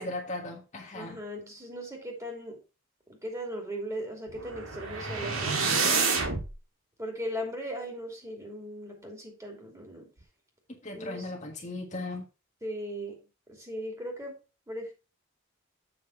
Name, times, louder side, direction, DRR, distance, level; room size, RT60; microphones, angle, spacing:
voice 1, 0.0-1.2 10.8-12.2, left 2 dB, 35° left, 1.5 m, -37 dB
voice 2, 0.9-2.6 3.1-5.6 7.0-10.1 10.9-11.3 12.6-13.1 13.5-14.4 14.7-14.9, equal, 15° right, 2.7 m, -38 dB
sound 1, 4.3-6.5, right 4 dB, 80° right, 2.0 m, -28 dB
7.8 x 6.0 x 4.5 m
head